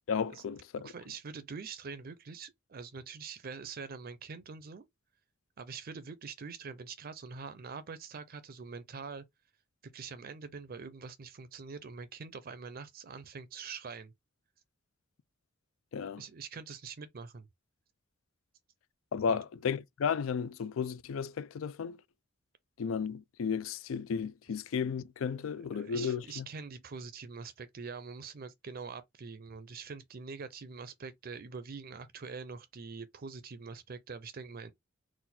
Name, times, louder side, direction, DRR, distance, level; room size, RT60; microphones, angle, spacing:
voice 1, 0.1-0.9 15.9-16.2 19.1-22.0 22.8-26.5, left 6 dB, 80° left, 0.4 m, -34 dB
voice 2, 0.8-4.8 5.6-9.2 9.8-14.1 16.2-17.5 19.3-19.4 25.3-34.7, right 5 dB, 45° right, 0.5 m, -44 dB
4.0 x 2.3 x 4.1 m
head